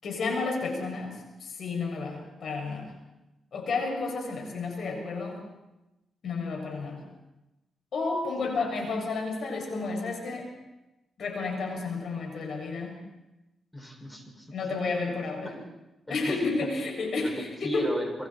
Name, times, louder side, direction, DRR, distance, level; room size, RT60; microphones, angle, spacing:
voice 1, 0.0-2.9 3.5-5.4 6.2-7.0 7.9-10.5 11.2-13.0 14.5-15.5 16.1-17.3 17.6-17.9, left 3 dB, 65° left, 2 dB, 7.2 m, -31 dB
voice 2, 13.7-14.5 15.4-15.6 16.1-16.7 17.2-18.3, equal, 10° left, 2 dB, 6.7 m, -37 dB
28.5 x 23.0 x 4.6 m, 0.98 s
cardioid pair, 75°, 0 cm